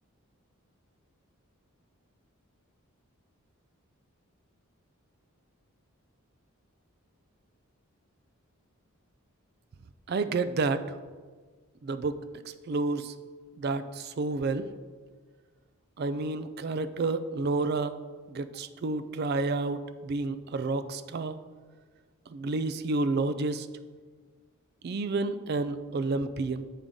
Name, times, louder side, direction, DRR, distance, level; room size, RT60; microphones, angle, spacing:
voice 1, 10.1-10.8 11.8-12.2 12.7-13.1 13.6-14.7 16.0-17.9 18.3-21.4 22.3-23.7 24.8-26.6, right 3 dB, 45° right, 12 dB, 0.3 m, -30 dB
7.3 x 5.1 x 3.6 m, 1.5 s
head